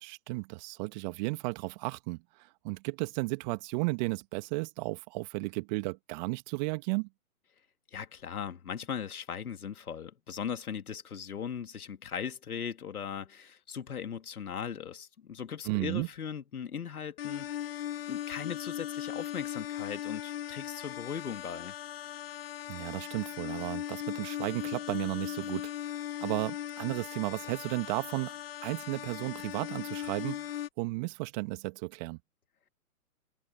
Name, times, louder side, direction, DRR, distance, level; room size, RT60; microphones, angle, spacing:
voice 1, 0.0-7.1 15.6-16.1 22.7-28.3 28.6-32.2, right 26 dB, 30° right, 2.1 m, -34 dB
voice 2, 7.9-17.8 18.1-21.7, left 7 dB, 70° left, 2.6 m, -39 dB
sound 1, 17.2-30.7, left 11 dB, 40° left, 0.7 m, -38 dB
figure-of-eight pair, 135°, 46 cm